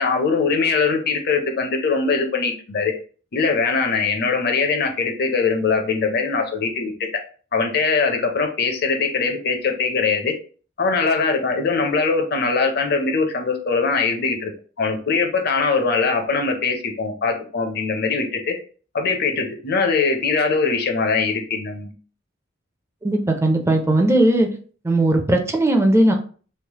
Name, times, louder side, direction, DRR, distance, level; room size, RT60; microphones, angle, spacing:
voice 1, 0.0-2.9 3.3-6.9 7.5-10.3 10.8-14.5 14.8-18.5 18.9-21.9, left 4 dB, 55° left, 4 dB, 0.6 m, -21 dB
voice 2, 23.0-24.5 24.8-26.1, right 1 dB, 15° right, 3 dB, 0.4 m, -17 dB
3.2 x 2.0 x 2.9 m, 0.41 s
head